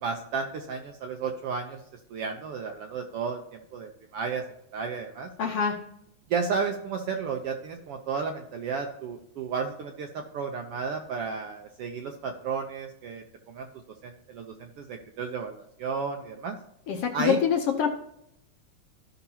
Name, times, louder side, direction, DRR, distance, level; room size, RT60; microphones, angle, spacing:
voice 1, 0.0-1.8 2.1-4.4 4.7-5.3 6.3-13.7 14.0-16.6 17.1-17.4, right 5 dB, 75° right, 4 dB, 1.4 m, -33 dB
voice 2, 5.4-5.8 16.9-17.9, left 7 dB, 70° left, 3 dB, 1.5 m, -25 dB
15.0 x 5.9 x 2.8 m, 0.78 s
omnidirectional pair, 3.4 m